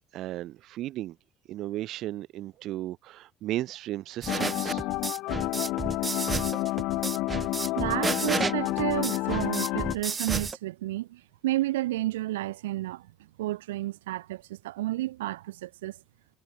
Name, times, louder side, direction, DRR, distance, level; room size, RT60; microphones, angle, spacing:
voice 1, 0.1-1.1 1.5-4.8, right 15 dB, 60° right, 0.9 m, -35 dB
sound 1, 4.2-10.6, right 4 dB, 25° right, 1.7 m, -32 dB
sound 2, 4.3-9.9, left 20 dB, 65° left, 0.4 m, -29 dB
voice 2, 7.7-13.1 13.4-15.9, right 16 dB, 80° right, 1.2 m, -31 dB
hypercardioid pair, 60°, 0 cm